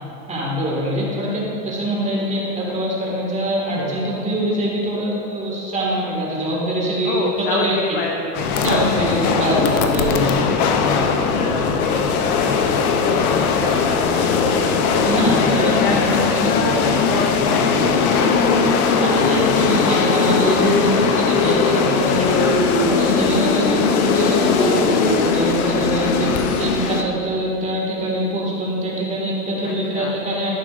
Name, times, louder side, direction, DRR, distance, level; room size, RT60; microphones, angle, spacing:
voice 1, 0.3-7.2 7.6-7.7 8.6-10.3 15.0-16.0 16.3-16.9 19.0-22.4 22.8-30.5, equal, 15° right, -4 dB, 1.9 m, -23 dB
voice 2, 7.0-9.8 10.4-14.7 15.5-18.4 22.0-22.6 29.6-30.1, left 3 dB, 20° left, 1 dB, 0.4 m, -28 dB
sound 1, 8.3-27.0, left 5 dB, 70° left, 0.8 m, -19 dB
12.0 x 6.0 x 2.5 m, 2.7 s
hypercardioid pair, 125°, 45 cm